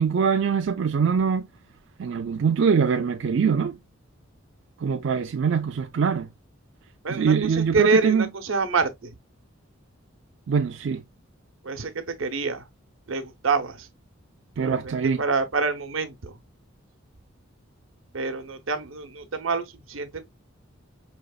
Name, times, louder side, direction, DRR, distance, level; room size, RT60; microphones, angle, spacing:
voice 1, 0.0-1.5 2.0-3.8 4.8-6.3 7.1-8.3 10.5-11.0 14.6-15.2, right 6 dB, 65° right, 0.4 m, -23 dB
voice 2, 7.0-9.1 11.6-12.7 13.1-13.9 14.6-16.4 18.1-20.3, right 4 dB, 90° right, 0.9 m, -27 dB
5.1 x 2.9 x 2.3 m
head